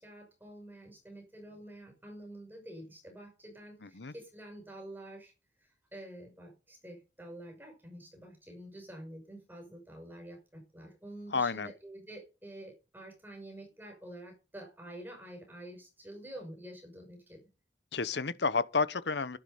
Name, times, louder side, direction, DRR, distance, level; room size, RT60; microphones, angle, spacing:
voice 1, 0.0-5.3 5.6-17.4, right 1 dB, 10° right, 6.1 m, -48 dB
voice 2, 3.8-4.1 11.3-11.7 17.9-19.4, left 4 dB, 70° left, 0.9 m, -31 dB
12.0 x 11.5 x 5.1 m
head